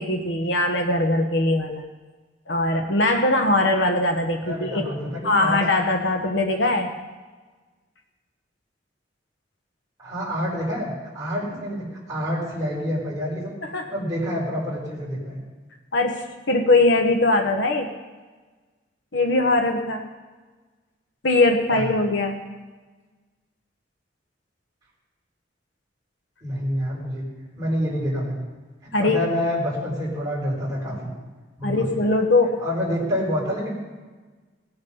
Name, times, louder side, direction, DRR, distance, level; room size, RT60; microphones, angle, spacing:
voice 1, 0.0-1.8 2.5-4.8 5.2-7.0 13.6-13.9 15.9-17.9 19.1-20.1 21.2-22.4 28.9-29.2 31.6-32.6, left 2 dB, 80° left, 4 dB, 1.2 m, -21 dB
voice 2, 4.4-5.6 10.0-13.5 13.9-15.4 21.7-21.9 26.4-27.3 27.5-28.4 28.8-31.1 31.6-32.0 32.6-33.7, equal, 20° right, -6 dB, 5.4 m, -27 dB
18.0 x 9.0 x 5.5 m, 1.3 s
head